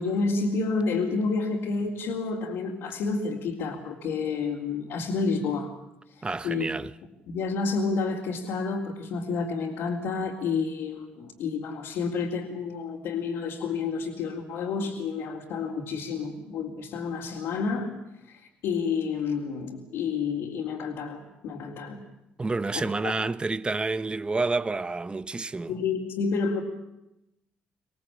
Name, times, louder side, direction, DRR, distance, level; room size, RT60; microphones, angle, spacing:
voice 1, 0.0-5.7 6.4-6.6 7.3-17.9 18.3-22.0 22.8-23.1 25.7-26.6, left 4 dB, 75° left, 4.0 m, -29 dB
voice 2, 6.2-6.9 22.4-25.7, right 3 dB, 25° right, 1.1 m, -29 dB
26.5 x 18.0 x 8.8 m
supercardioid pair, 65°, 4 cm